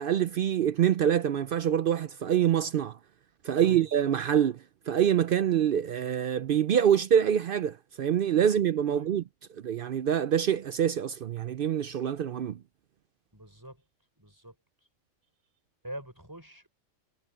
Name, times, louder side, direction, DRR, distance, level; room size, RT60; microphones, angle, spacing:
voice 1, 0.0-3.0 3.4-4.6 4.9-9.2 9.6-12.6, right 9 dB, 65° right, 0.5 m, -25 dB
voice 2, 13.3-13.8 14.2-14.6 15.8-16.7, right 1 dB, 15° right, 5.4 m, -44 dB
omnidirectional pair, 1.4 m